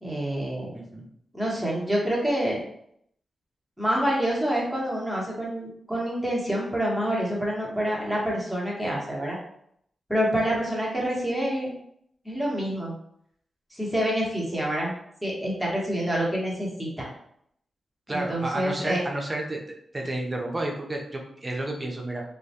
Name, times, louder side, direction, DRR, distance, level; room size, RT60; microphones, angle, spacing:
voice 1, 0.0-0.7 1.3-2.6 3.8-9.4 10.1-11.7 12.2-12.9 13.7-14.9 15.2-17.1 18.1-19.0, equal, ahead, -4 dB, 1.0 m, -27 dB
voice 2, 0.7-1.0 18.1-19.6 19.9-22.2, right 1 dB, 30° right, 0 dB, 0.6 m, -31 dB
2.2 x 2.1 x 2.7 m, 0.70 s
cardioid pair, 45°, 0 cm